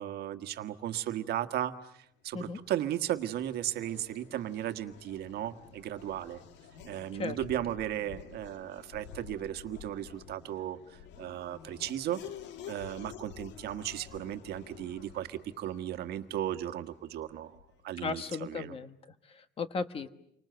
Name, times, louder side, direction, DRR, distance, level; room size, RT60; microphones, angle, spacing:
voice 1, 0.0-6.4 6.8-12.2 12.7-17.6 17.8-18.7, right 12 dB, 60° right, 9 dB, 1.5 m, -36 dB
Race car auto racing / Accelerating revving vroom, 2.3-17.9, left 9 dB, 75° left, 2.0 m, -50 dB
voice 2, 18.0-20.1, left 4 dB, 30° left, 10 dB, 1.3 m, -36 dB
30.0 x 25.0 x 7.9 m, 0.75 s
cardioid pair, 175°, 18 cm